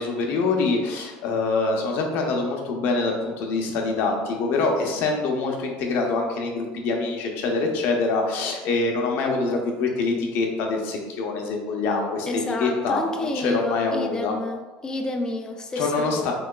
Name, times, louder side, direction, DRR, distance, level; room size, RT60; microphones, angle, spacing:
voice 1, 0.0-13.0 13.3-14.3 15.8-16.3, left 3 dB, 60° left, 2 dB, 0.6 m, -25 dB
voice 2, 12.3-16.3, left 2 dB, 20° left, 4 dB, 0.3 m, -29 dB
3.4 x 3.0 x 2.2 m, 1.3 s
supercardioid pair, 130°, 4 cm